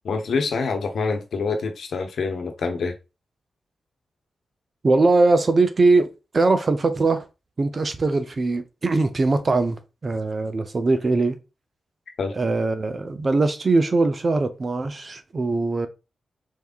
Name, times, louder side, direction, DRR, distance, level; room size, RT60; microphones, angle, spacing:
voice 1, 0.0-2.9 12.2-12.4, left 4 dB, 70° left, 1.0 m, -26 dB
voice 2, 4.8-7.3 7.6-11.4 12.4-15.9, right 3 dB, 45° right, 0.7 m, -21 dB
4.7 x 3.5 x 2.5 m
supercardioid pair, 50°, 0 cm